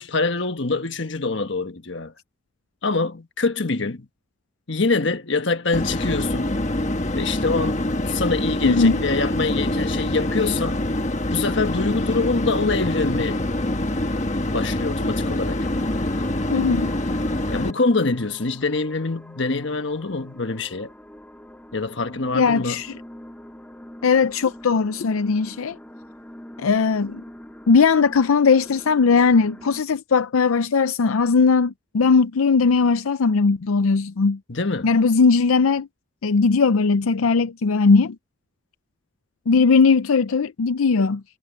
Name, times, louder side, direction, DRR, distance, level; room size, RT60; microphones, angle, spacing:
voice 1, 0.0-2.1 2.8-4.1 4.7-6.6 7.1-10.8 11.3-13.4 14.5-15.7 17.5-20.9 21.7-22.8 34.5-35.0, left 3 dB, 60° left, 1.4 m, -25 dB
sound 1, 5.7-17.7, left 1 dB, 35° left, 1.3 m, -25 dB
voice 2, 8.6-9.0 16.5-16.9 22.3-22.9 24.0-25.8 26.6-27.2 27.7-34.4 34.8-35.9 36.2-38.2 39.5-41.2, left 4 dB, 90° left, 0.5 m, -19 dB
sound 2, 15.5-29.8, left 1 dB, 5° left, 1.8 m, -44 dB
head